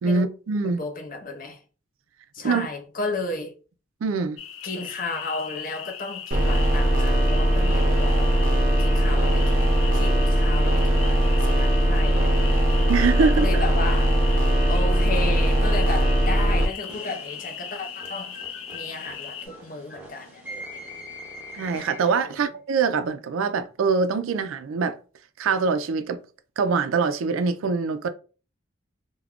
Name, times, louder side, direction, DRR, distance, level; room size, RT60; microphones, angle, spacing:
voice 1, 0.0-0.8 2.4-2.7 4.0-4.4 12.9-13.6 21.5-25.0 25.4-26.2 26.6-28.1, right 5 dB, 85° right, 0.4 m, -24 dB
voice 2, 0.6-1.6 2.3-3.5 4.6-8.5 8.8-12.8 13.2-14.1 14.7-18.4 18.7-20.9 22.3-22.4, left 3 dB, 40° left, 0.5 m, -34 dB
sound 1, 4.4-19.5, left 8 dB, 90° left, 0.5 m, -38 dB
sound 2, 6.3-16.7, right 1 dB, 40° right, 0.6 m, -20 dB
sound 3, 16.9-22.3, equal, 10° right, 0.7 m, -42 dB
2.3 x 2.1 x 3.5 m
head